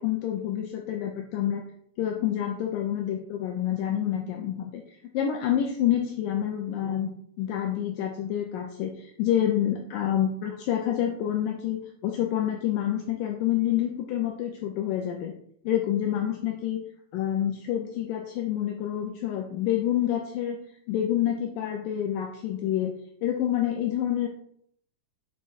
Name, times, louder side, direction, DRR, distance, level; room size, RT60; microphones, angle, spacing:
voice 1, 0.0-1.6 2.0-4.8 5.1-7.1 7.4-15.3 15.7-16.8 17.1-20.6 20.9-22.9 23.2-24.3, left 11 dB, 75° left, 2 dB, 2.2 m, -28 dB
7.4 x 5.9 x 4.0 m, 0.66 s
omnidirectional pair, 4.3 m